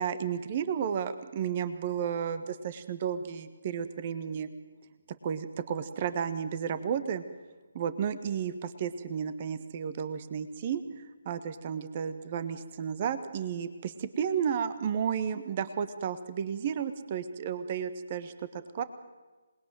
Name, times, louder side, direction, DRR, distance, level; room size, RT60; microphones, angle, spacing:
voice 1, 0.0-4.5 5.2-7.2 7.7-18.3 18.7-18.8, right 7 dB, 30° right, 12 dB, 1.5 m, -32 dB
27.0 x 20.5 x 9.2 m, 1.3 s
figure-of-eight pair, 145°, 0 cm